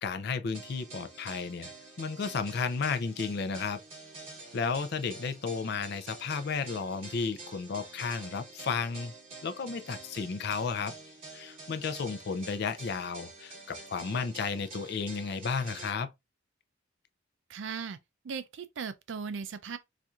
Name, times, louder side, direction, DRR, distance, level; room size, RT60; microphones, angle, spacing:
voice 1, 0.0-1.7 2.0-3.8 4.5-9.1 9.4-10.9 11.3-16.1, left 5 dB, 55° left, 0.4 m, -33 dB
sound 1, 0.5-15.9, right 3 dB, 35° right, 2.4 m, -48 dB
voice 2, 17.5-18.0 18.2-19.8, right 6 dB, 65° right, 0.4 m, -37 dB
4.2 x 2.5 x 2.4 m
head